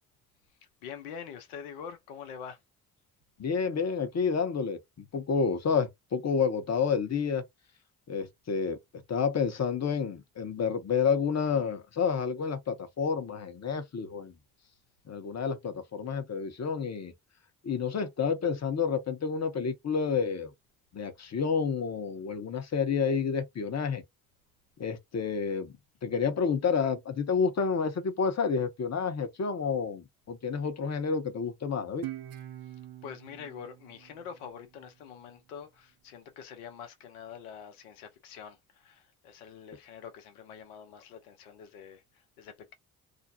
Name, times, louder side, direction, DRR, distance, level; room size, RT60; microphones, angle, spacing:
voice 1, 0.8-2.6 33.0-42.7, left 7 dB, 90° left, 0.7 m, -45 dB
voice 2, 3.4-4.8 5.1-7.4 8.1-8.8 9.1-14.3 15.1-17.1 17.6-20.5 20.9-24.0 24.8-25.8 26.0-32.1, left 6 dB, 40° left, 0.8 m, -29 dB
Guitar, 32.0-35.2, right 13 dB, 55° right, 0.6 m, -44 dB
2.5 x 2.0 x 2.6 m
hypercardioid pair, 45°, 42 cm